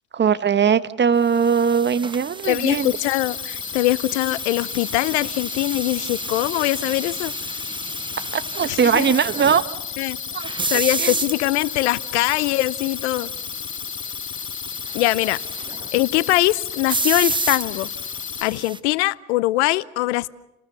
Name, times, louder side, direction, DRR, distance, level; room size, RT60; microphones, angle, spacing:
voice 1, 0.1-2.9 8.3-9.6 10.3-11.1, right 7 dB, 35° right, 13 dB, 1.2 m, -20 dB
sound 1, 1.3-18.8, right 3 dB, 15° right, 1.1 m, -32 dB
sound 2, 2.4-18.4, left 10 dB, 40° left, 0.9 m, -33 dB
voice 2, 2.5-7.3 8.7-9.1 10.0-10.2 10.7-13.3 14.9-15.4 15.9-17.9 18.4-20.3, left 18 dB, 80° left, 20 dB, 0.8 m, -22 dB
29.5 x 19.5 x 6.9 m, 0.94 s
hypercardioid pair, 60°, 34 cm